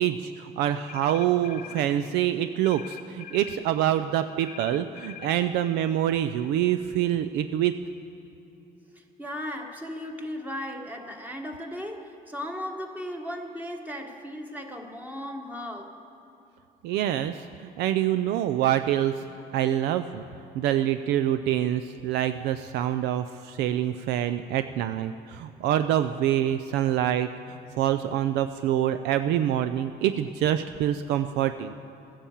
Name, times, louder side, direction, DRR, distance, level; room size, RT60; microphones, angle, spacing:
voice 1, 0.0-7.8 16.8-19.2 19.5-20.2 20.5-31.8, right 11 dB, 85° right, 10 dB, 0.4 m, -26 dB
sound 1, 0.9-1.9 2.6-3.6 4.4-5.4, left 10 dB, 50° left, 0.9 m, -43 dB
voice 2, 8.9-16.0, equal, 10° right, 3 dB, 1.4 m, -36 dB
15.0 x 10.0 x 7.3 m, 2.8 s
cardioid pair, 110°, 17 cm